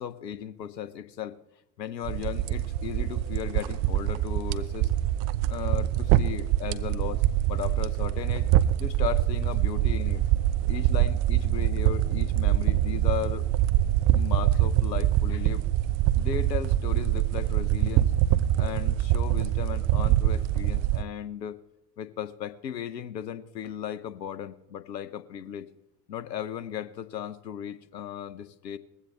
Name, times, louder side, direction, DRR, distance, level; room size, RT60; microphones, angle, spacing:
voice 1, 0.0-1.4 1.8-4.9 5.5-8.5 8.8-10.2 10.7-13.4 14.1-15.6 16.1-18.1 18.6-21.6 22.0-25.7 26.1-28.8, left 10 dB, 80° left, 16 dB, 1.0 m, -36 dB
sound 1, 2.0-21.0, right 13 dB, 40° right, 0.7 m, -24 dB
20.5 x 15.5 x 3.2 m, 0.88 s
figure-of-eight pair, 80°, 50 cm